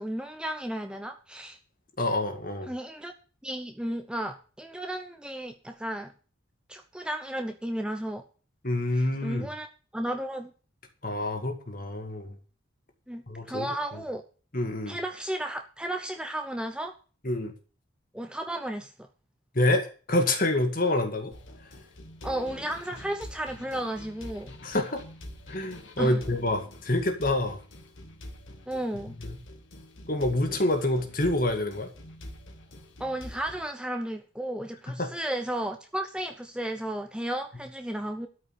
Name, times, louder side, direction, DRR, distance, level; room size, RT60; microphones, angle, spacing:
voice 1, 0.0-1.6 2.7-3.1 3.4-6.1 6.7-8.2 8.9-10.5 13.1-14.2 14.9-16.9 18.1-18.9 22.2-24.5 26.0-26.2 28.7-29.1 33.0-38.3, right 1 dB, 5° right, 5 dB, 0.8 m, -34 dB
voice 2, 2.0-2.7 8.6-9.5 11.0-12.4 13.3-13.7 14.5-15.0 17.2-17.5 19.5-21.3 24.6-25.0 25.5-27.6 29.2-29.4 30.1-31.9 34.9-35.1, left 1 dB, 45° left, 5 dB, 2.0 m, -27 dB
sound 1, 21.3-33.7, left 1 dB, 70° left, 2.2 m, -45 dB
13.0 x 5.4 x 9.0 m, 0.39 s
head